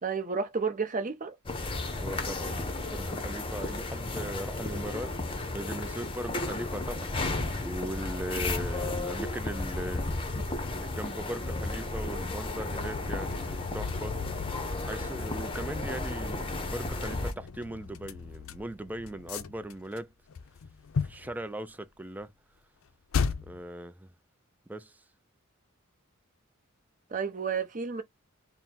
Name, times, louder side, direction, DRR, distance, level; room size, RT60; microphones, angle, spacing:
voice 1, 0.0-1.4 10.5-10.6 27.1-28.0, right 5 dB, 35° right, 0.7 m, -31 dB
sound 1, 1.5-17.3, left 2 dB, 25° left, 0.7 m, -33 dB
voice 2, 2.0-5.1 5.5-7.1 7.6-10.0 10.7-14.2 14.9-20.1 21.0-22.3 23.4-24.1 24.7-25.0, right 1 dB, 10° right, 0.3 m, -39 dB
sound 2, 12.7-20.0 20.3-21.3 22.2-22.3 23.1-23.6, left 5 dB, 65° left, 0.5 m, -36 dB
4.2 x 2.0 x 3.6 m
head